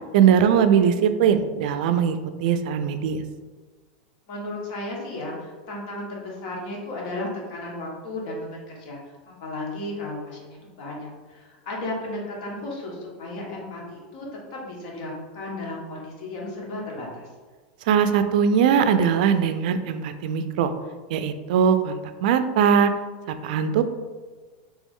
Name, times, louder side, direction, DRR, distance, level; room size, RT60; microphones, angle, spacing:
voice 1, 0.1-3.2 17.9-20.7 21.1-22.9 23.3-23.8, right 7 dB, 70° right, 10 dB, 0.3 m, -20 dB
voice 2, 4.3-14.3 14.5-17.3, left 2 dB, 60° left, -3 dB, 1.2 m, -34 dB
3.3 x 3.1 x 3.5 m, 1.4 s
supercardioid pair, 135°, 5 cm